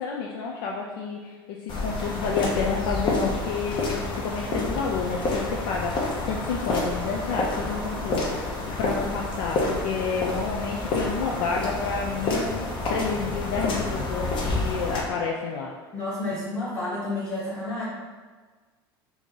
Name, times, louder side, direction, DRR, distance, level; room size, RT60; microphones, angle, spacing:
voice 1, 0.0-15.7, left 5 dB, 65° left, -1 dB, 0.4 m, -30 dB
sound 1, 1.7-15.0, left 2 dB, 40° left, 0.8 m, -29 dB
voice 2, 15.9-17.8, left 2 dB, 10° left, -9 dB, 0.9 m, -30 dB
2.9 x 2.7 x 3.6 m, 1.4 s
hypercardioid pair, 75°, 13 cm